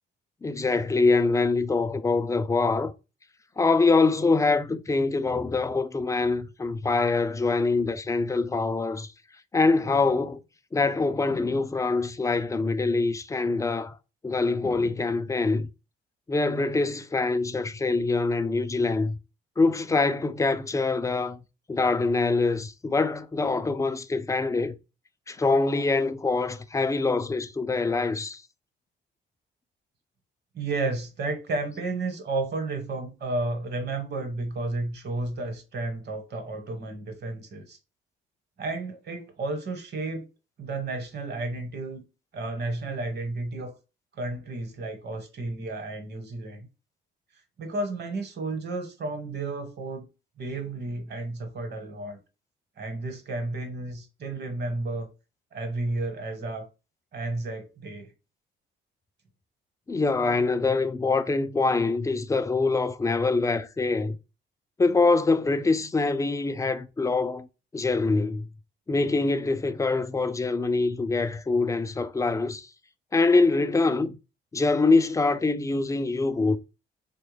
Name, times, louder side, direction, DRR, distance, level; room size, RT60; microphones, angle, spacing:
voice 1, 0.4-2.9 3.6-9.1 9.5-10.4 10.7-14.0 14.2-15.7 16.3-19.2 19.6-21.4 21.7-24.8 25.3-28.4 59.9-64.2 64.8-67.5 67.7-68.5 68.9-72.7 73.1-74.1 74.5-76.6, left 3 dB, 15° left, 0.3 m, -24 dB
voice 2, 30.5-37.8 38.6-40.3 40.6-42.0 42.3-43.7 44.1-46.7 47.6-50.1 50.4-52.2 52.8-55.1 55.5-56.7 57.1-58.1, right 2 dB, 55° right, 1.2 m, -32 dB
3.4 x 2.3 x 3.2 m
cardioid pair, 90°, 20 cm